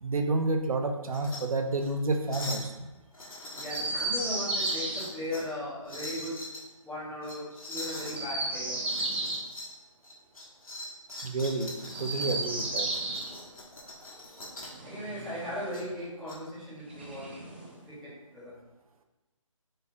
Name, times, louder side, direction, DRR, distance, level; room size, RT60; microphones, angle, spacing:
voice 1, 0.0-2.9 11.2-11.7 12.0-12.9, right 2 dB, 85° right, 5 dB, 0.6 m, -29 dB
sound 1, 1.0-1.4 1.8-1.9 2.3-2.7 3.1-4.1 4.5-5.5 5.8-6.6 7.2-8.2 8.8-9.7 10.0-14.8 15.7-16.4, left 1 dB, 90° left, 1.2 m, -42 dB
voice 2, 3.4-6.4 6.8-8.8 14.8-17.4 17.8-18.5, left 1 dB, ahead, -16 dB, 0.9 m, -37 dB
Chirp tweet, 3.7-5.0 8.0-9.4 11.8-13.3 14.7-15.8 16.9-17.8, right 2 dB, 20° right, 0.4 m, -33 dB
3.9 x 3.9 x 2.7 m, 1.0 s
figure-of-eight pair, 165°, 18 cm